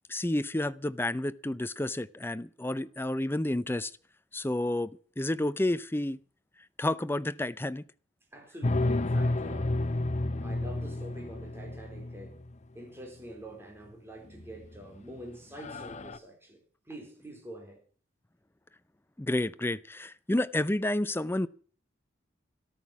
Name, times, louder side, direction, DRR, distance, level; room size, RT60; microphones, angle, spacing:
voice 1, 0.1-3.9 4.3-6.2 6.8-7.9 19.2-21.5, left 1 dB, 10° left, 0.6 m, -30 dB
voice 2, 8.3-9.8 10.4-12.4 12.7-17.8, right 1 dB, 15° right, 4.1 m, -46 dB
sound 1, 8.6-12.5 14.4-14.8 15.2-15.3 15.6-16.2, left 2 dB, 40° left, 0.8 m, -31 dB
13.5 x 13.0 x 6.0 m
head